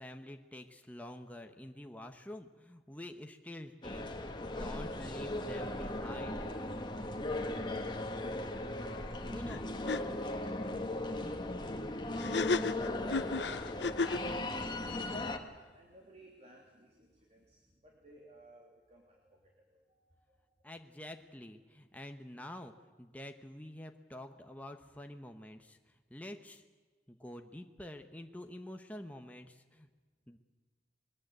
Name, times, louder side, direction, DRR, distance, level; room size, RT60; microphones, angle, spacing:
voice 1, 0.0-6.5 9.1-9.7 20.6-22.7 23.0-26.6 27.1-29.9 30.3-30.4, left 1 dB, 10° left, 5 dB, 1.0 m, -48 dB
sound 1, 3.8-15.4, left 1 dB, 25° left, 1.7 m, -37 dB
sound 2, 9.5-9.6 9.9-10.0 12.2-14.3, left 4 dB, 80° left, 0.8 m, -33 dB
voice 2, 15.7-20.7, right 1 dB, 40° right, -1 dB, 3.2 m, -62 dB
22.0 x 21.0 x 8.1 m, 1.3 s
head